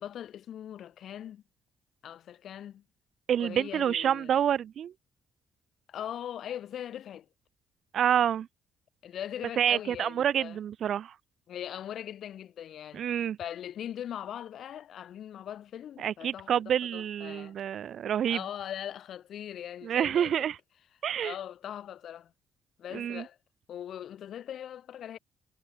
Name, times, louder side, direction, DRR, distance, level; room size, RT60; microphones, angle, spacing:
voice 1, 0.0-1.4 2.0-2.8 3.4-4.3 5.9-7.3 9.0-10.6 11.5-17.5 18.3-20.5 21.2-22.3 22.8-23.4 23.7-25.2, left 10 dB, 70° left, 2.0 m, -40 dB
voice 2, 3.3-4.9 7.9-8.5 9.6-11.1 12.9-13.4 16.0-18.4 19.8-20.6 21.0-21.3 22.9-23.2, right 9 dB, 65° right, 0.6 m, -28 dB
cardioid pair, 90°, 0 cm